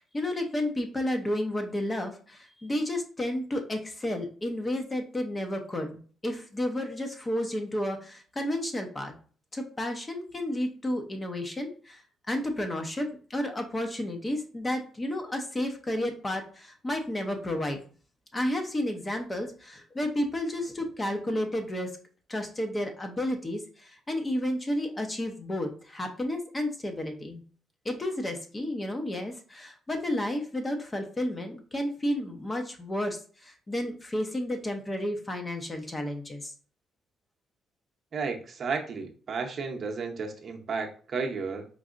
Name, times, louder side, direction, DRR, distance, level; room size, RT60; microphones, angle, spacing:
voice 1, 0.0-9.1 9.5-12.0 12.3-17.8 18.3-21.9 22.3-27.4 27.8-36.5, left 1 dB, 25° left, 5 dB, 0.7 m, -31 dB
voice 2, 38.1-41.7, right 4 dB, 50° right, 2 dB, 0.7 m, -33 dB
4.5 x 2.7 x 2.5 m, 0.42 s
cardioid pair, 90°, 0 cm